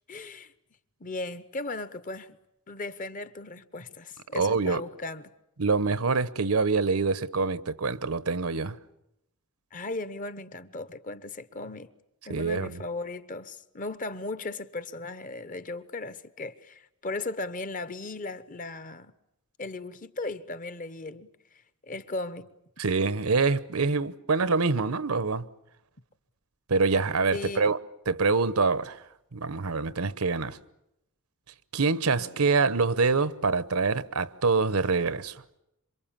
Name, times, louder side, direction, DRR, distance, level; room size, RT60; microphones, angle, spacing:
voice 1, 0.1-0.5 1.0-2.4 2.7-5.3 9.7-11.9 12.2-19.1 19.6-21.3 21.8-22.5 27.3-27.7 32.2-32.4, left 2 dB, 35° left, 0.9 m, -37 dB
voice 2, 4.3-4.8 5.6-8.8 12.3-12.8 22.8-25.4 26.7-27.8 28.1-29.0 29.3-30.6 31.7-35.4, right 4 dB, 75° right, 0.9 m, -25 dB
27.0 x 24.5 x 7.4 m
head